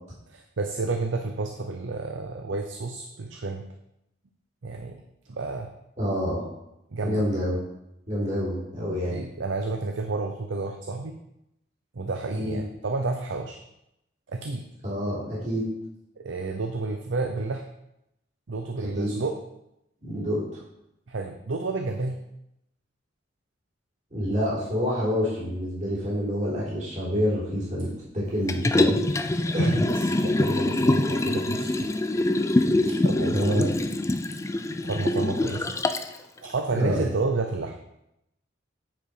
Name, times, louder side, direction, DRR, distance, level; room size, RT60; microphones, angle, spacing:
voice 1, 0.3-3.6 4.6-5.0 5.3-5.7 6.9-7.2 9.1-11.2 11.9-13.6 14.3-14.7 16.2-17.6 18.5-19.4 21.1-22.2 29.4-31.9 32.9-33.7 34.8-35.8 36.1-37.8, right 3 dB, 70° right, 5 dB, 0.6 m, -31 dB
voice 2, 6.0-6.4 7.0-7.6 8.1-9.2 12.3-12.6 14.8-15.6 18.8-19.1 20.0-20.6 24.1-27.9 28.1-29.9 33.3-33.7 36.7-37.0, equal, 40° right, -7 dB, 3.4 m, -27 dB
Liquid, 28.5-36.2 36.6-36.7, left 2 dB, 15° left, 0.3 m, -24 dB
9.1 x 5.0 x 4.8 m, 0.83 s
head